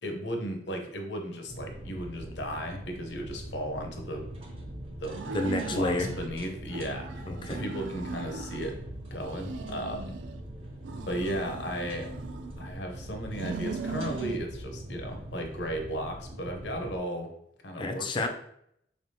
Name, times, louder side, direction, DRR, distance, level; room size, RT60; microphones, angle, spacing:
voice 1, 0.0-4.3 5.0-5.2 5.7-8.8 9.1-10.1 11.1-12.1 12.6-17.3 17.6-18.3, equal, 80° left, 3 dB, 0.7 m, -35 dB
sound 1, 1.5-17.0, right 1 dB, 35° right, 0.6 m, -42 dB
sound 2, 5.1-6.3 6.7-8.8 9.2-10.4 10.8-12.7 13.2-14.4, right 4 dB, 90° right, 0.3 m, -39 dB
voice 2, 5.3-6.1 7.3-7.6 17.8-18.3, left 2 dB, 25° left, 4 dB, 0.4 m, -29 dB
3.6 x 3.4 x 2.7 m, 0.72 s
head